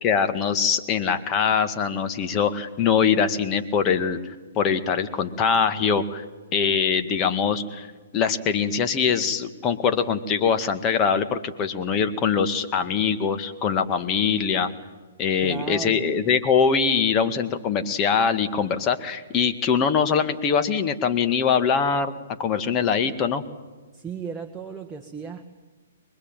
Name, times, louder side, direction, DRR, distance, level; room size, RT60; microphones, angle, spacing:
voice 1, 0.0-6.2 6.5-7.9 8.1-14.7 15.2-22.1 22.4-23.4, left 6 dB, 25° left, 8 dB, 2.0 m, -23 dB
voice 2, 15.4-16.0 23.9-25.5, right 5 dB, 10° right, 1 dB, 1.6 m, -35 dB
24.5 x 21.5 x 9.1 m, 1.3 s
hypercardioid pair, 130°, 0 cm